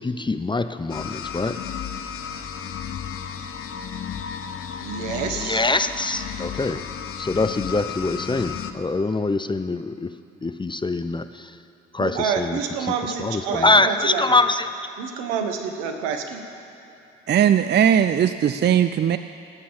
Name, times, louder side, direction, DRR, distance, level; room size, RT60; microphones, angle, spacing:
voice 1, 0.0-1.6 5.3-6.8 7.2-10.1 10.4-11.6 11.9-12.6 13.0-14.7, left 3 dB, 15° left, 11 dB, 0.6 m, -24 dB
sound 1, 0.9-8.7, left 7 dB, 45° left, 1.1 m, -33 dB
voice 2, 4.8-5.6 12.0-14.2 15.0-16.4, right 6 dB, 75° right, 5 dB, 1.4 m, -28 dB
voice 3, 17.3-19.2, right 9 dB, 35° right, 11 dB, 0.5 m, -18 dB
18.5 x 8.6 x 7.4 m, 2.8 s
hypercardioid pair, 50°, 31 cm